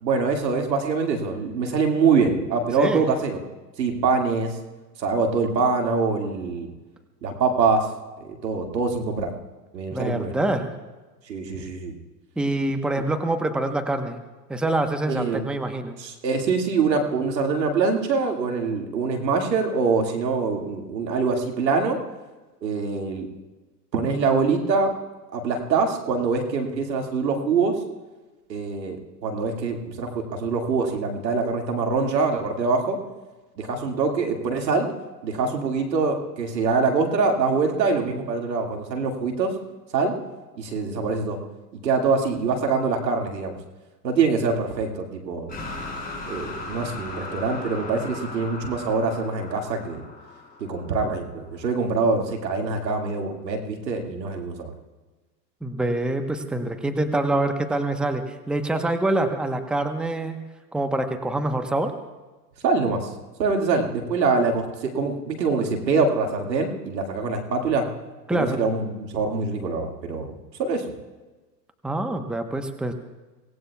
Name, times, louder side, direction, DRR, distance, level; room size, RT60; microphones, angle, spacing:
voice 1, 0.0-3.4 3.8-4.5 5.0-6.7 7.2-7.9 8.2-9.3 9.7-10.3 11.3-11.9 13.0-13.1 15.1-15.5 16.0-22.0 22.6-23.3 23.9-24.9 25.3-27.7 28.5-33.0 33.6-34.9 35.2-39.5 39.9-40.1 40.6-41.4 41.7-43.6 44.0-45.5 46.3-50.1 50.6-54.7 62.6-63.1 63.4-67.9 68.3-70.3 70.6-70.8, right 4 dB, 85° right, 2 dB, 2.3 m, -24 dB
voice 2, 9.9-10.7 12.4-14.2 14.5-16.0 55.6-60.4 60.7-61.9 68.3-68.6 71.8-72.9, right 2 dB, ahead, 6 dB, 1.0 m, -25 dB
sound 1, 45.5-51.5, left 2 dB, 20° left, 5.4 m, -37 dB
24.5 x 18.0 x 2.4 m, 1.2 s
hypercardioid pair, 100°, 49 cm